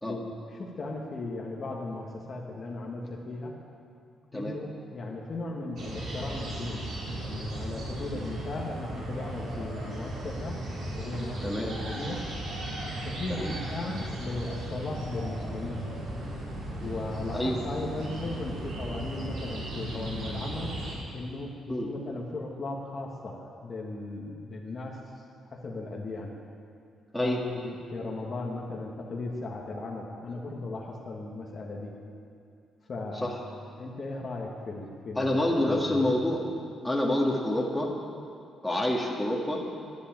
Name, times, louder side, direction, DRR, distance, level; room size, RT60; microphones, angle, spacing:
voice 1, 0.0-3.5 4.3-10.6 10.9-12.2 13.0-15.8 16.8-20.7 21.1-25.2 25.5-26.3 27.2-31.9 32.9-33.4 33.8-36.1, left 2 dB, 45° left, -1 dB, 1.6 m, -37 dB
sound 1, 5.8-20.9, right 1 dB, 70° right, 4.3 m, -36 dB
voice 2, 11.4-11.7 13.3-13.5 17.3-17.6 21.7-21.9 27.1-27.4 33.2-33.3 35.2-36.4 36.8-37.9 38.6-39.6, left 1 dB, 5° left, -3 dB, 2.0 m, -27 dB
11.0 x 9.8 x 8.9 m, 2.4 s
cardioid pair, 90°, 0 cm